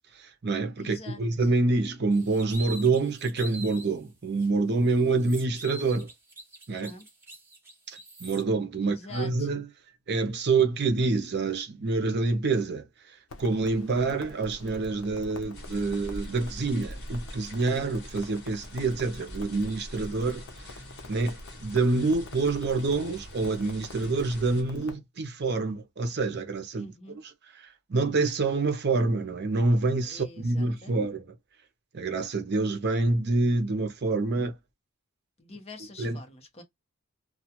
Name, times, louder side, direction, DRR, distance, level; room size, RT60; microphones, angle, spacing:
voice 1, 0.2-6.1 6.7-6.9 7.9-9.6 10.1-12.9 13.4-20.4 21.1-27.2 27.6-31.2 31.9-34.6 36.0-36.2, right 3 dB, 55° right, 0.6 m, -27 dB
voice 2, 0.8-1.5 6.8-7.1 8.8-9.5 26.8-27.2 30.0-31.1 35.4-36.6, left 2 dB, 30° left, 0.8 m, -46 dB
sound 1, 2.1-3.9 4.4-4.5 4.8-8.4, right 2 dB, 10° right, 0.9 m, -44 dB
Crackle, 13.3-25.0, left 2 dB, 75° left, 0.6 m, -46 dB
sound 2, 15.5-24.6, equal, 55° left, 1.1 m, -44 dB
2.3 x 2.2 x 2.8 m
head